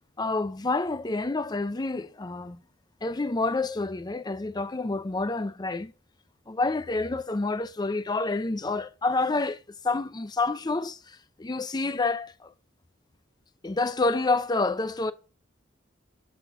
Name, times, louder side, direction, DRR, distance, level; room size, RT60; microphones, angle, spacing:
voice 1, 0.2-2.6 3.0-5.9 6.5-12.5 13.6-15.1, left 3 dB, 20° left, 0.5 m, -28 dB
6.9 x 4.1 x 6.0 m
head